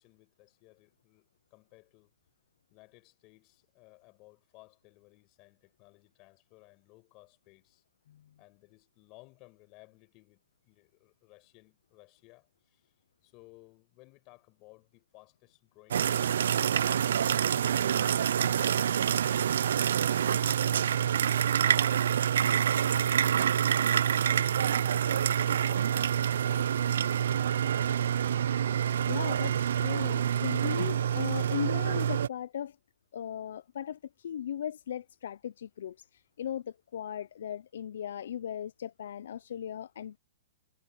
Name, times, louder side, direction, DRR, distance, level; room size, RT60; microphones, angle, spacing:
voice 1, 0.0-2.1 2.7-7.8 8.4-12.9 13.2-16.8 25.4-27.6, left 24 dB, 25° left, 5.4 m, -59 dB
sound 1, 15.9-32.3, right 9 dB, 70° right, 0.5 m, -27 dB
voice 2, 29.1-32.8 33.1-40.2, left 9 dB, 65° left, 0.5 m, -37 dB
hypercardioid pair, 165°, 0 cm